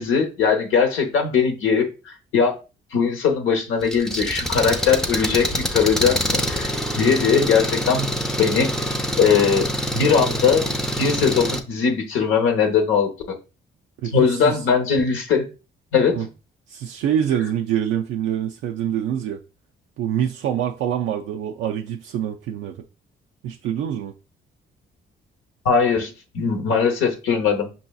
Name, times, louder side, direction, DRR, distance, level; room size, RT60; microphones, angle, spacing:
voice 1, 0.0-2.6 2.9-8.1 8.4-9.7 9.9-10.6 11.0-13.1 14.1-15.5 15.9-16.3 25.6-27.7, left 6 dB, 90° left, 0.9 m, -20 dB
Engine, 3.8-11.6, equal, 5° left, 0.5 m, -25 dB
voice 2, 14.0-14.6 16.1-16.3 16.7-19.4 20.0-22.8 23.4-24.1, right 9 dB, 80° right, 0.4 m, -25 dB
5.5 x 2.7 x 2.2 m
cardioid pair, 90°, 20 cm